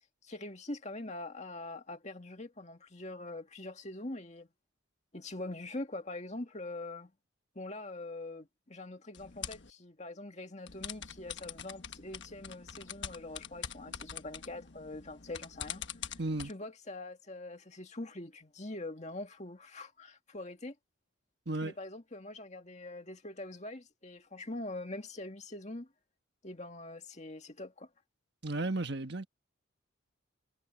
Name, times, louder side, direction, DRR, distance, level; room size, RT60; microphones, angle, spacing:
voice 1, 0.2-4.5 5.1-7.1 7.6-20.8 21.6-25.9 26.4-27.9, left 2 dB, 35° left, 2.0 m, -43 dB
sound 1, 9.1-9.7 10.7-16.5, left 8 dB, 60° left, 1.3 m, -44 dB
voice 2, 16.2-16.5 21.5-21.7 28.4-29.3, right 2 dB, 55° right, 1.5 m, -34 dB
head